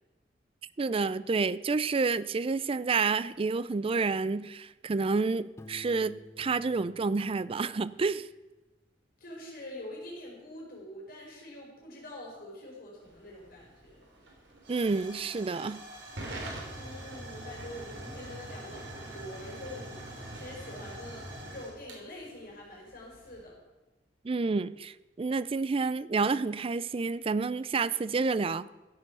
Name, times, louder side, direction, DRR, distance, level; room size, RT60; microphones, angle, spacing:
voice 1, 0.8-8.3 14.7-15.8 24.2-28.7, right 4 dB, 30° right, 17 dB, 0.4 m, -29 dB
Piano, 5.6-8.3, equal, 15° left, 0.8 m, -52 dB
voice 2, 9.2-14.1 16.8-23.6, left 1 dB, 55° left, -3 dB, 5.4 m, -45 dB
Hiss / Fire / Tick, 13.0-23.4, right 1 dB, 85° right, 3.6 m, -44 dB
15.5 x 7.8 x 6.1 m, 1.1 s
head